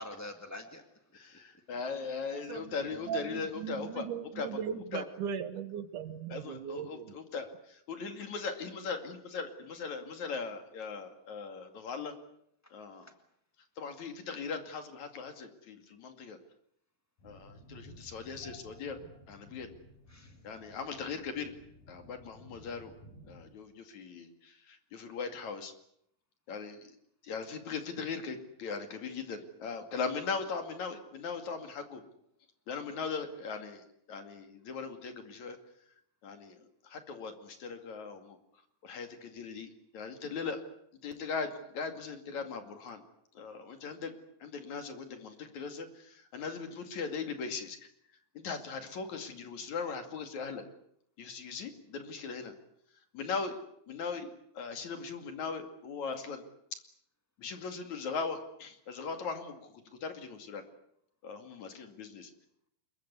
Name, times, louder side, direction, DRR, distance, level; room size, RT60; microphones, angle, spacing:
voice 1, 0.0-1.6 12.6-13.1 20.1-20.4, left 1 dB, 25° left, 6 dB, 0.3 m, -47 dB
voice 2, 1.1-4.1 4.4-4.6 4.9-5.1 6.3-12.1 12.7-13.1 13.8-16.4 17.2-19.0 19.3-19.7 20.4-21.5 21.9-22.9 23.3-25.7 26.5-27.0 27.2-32.0 32.7-35.6 36.2-38.4 38.8-40.6 41.0-43.0 43.4-44.1 44.4-47.8 48.4-50.6 51.2-52.5 53.1-53.6 53.9-56.4 56.7-56.8 57.4-60.7 61.2-62.3, left 5 dB, 55° left, 7 dB, 3.5 m, -39 dB
voice 3, 2.5-7.1, right 8 dB, 70° right, 12 dB, 2.7 m, -38 dB
sound 1, 17.2-23.5, left 1 dB, 75° left, 8.3 m, -55 dB
25.5 x 22.5 x 8.2 m, 0.72 s
omnidirectional pair, 4.1 m